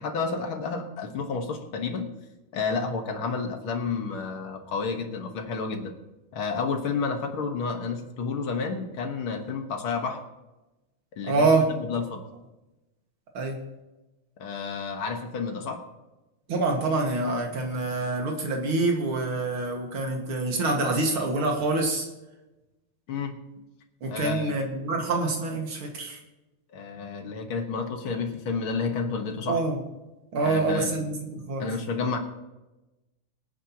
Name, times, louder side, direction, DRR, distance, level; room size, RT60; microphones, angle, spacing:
voice 1, 0.0-2.1 2.5-5.9 6.3-10.2 11.2-12.2 14.4-15.8 23.1-23.4 24.1-24.5 26.7-29.6 30.4-31.1 31.6-32.2, left 4 dB, 70° left, 4 dB, 2.2 m, -30 dB
voice 2, 11.2-11.7 13.3-13.6 16.5-22.1 24.0-26.2 29.5-29.8 30.3-31.7, right 3 dB, 70° right, 1 dB, 2.7 m, -26 dB
24.0 x 9.5 x 3.0 m, 1.0 s
omnidirectional pair, 2.4 m